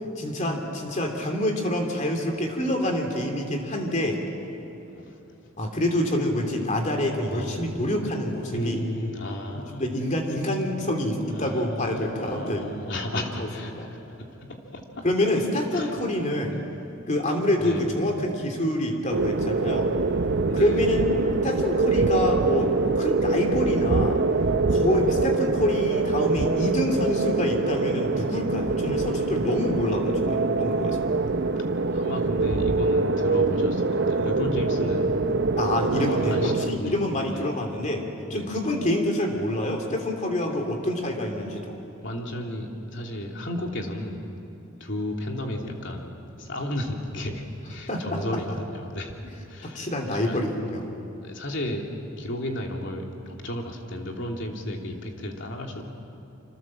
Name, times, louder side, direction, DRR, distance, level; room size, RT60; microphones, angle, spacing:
voice 1, 0.2-4.2 5.6-8.8 9.5-12.7 13.1-13.5 13.7-13.9 15.0-16.6 17.1-19.9 20.5-24.2 24.7-31.1 35.6-38.0 38.3-41.8 47.9-48.2 49.6-50.9, left 1 dB, 35° left, 2 dB, 3.0 m, -27 dB
voice 2, 4.8-5.2 7.3-7.8 8.5-9.8 11.3-14.0 14.4-15.1 15.7-16.0 17.6-17.8 20.5-20.8 31.9-35.1 35.9-36.9 37.3-37.4 38.3-38.6 42.0-44.2 44.8-50.4 51.2-51.9 52.2-55.9, left 1 dB, 60° left, 1 dB, 3.1 m, -33 dB
sound 1, 19.1-36.7, right 3 dB, 55° right, 0.8 m, -24 dB
27.0 x 25.5 x 7.6 m, 2.9 s
head